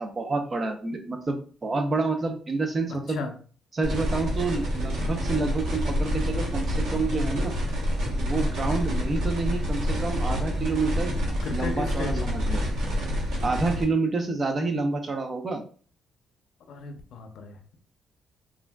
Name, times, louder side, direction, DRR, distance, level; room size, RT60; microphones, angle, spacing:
voice 1, 0.0-3.2 3.7-7.5 8.2-11.1 11.5-12.6 13.4-15.6, right 3 dB, 35° right, 5 dB, 0.6 m, -28 dB
voice 2, 2.9-3.4 11.4-12.3 16.7-17.8, left 4 dB, 70° left, 5 dB, 0.5 m, -35 dB
sound 1, 3.8-13.8, equal, 80° right, 1.1 m, -27 dB
3.5 x 2.5 x 2.2 m, 0.41 s
cardioid pair, 90°, 0 cm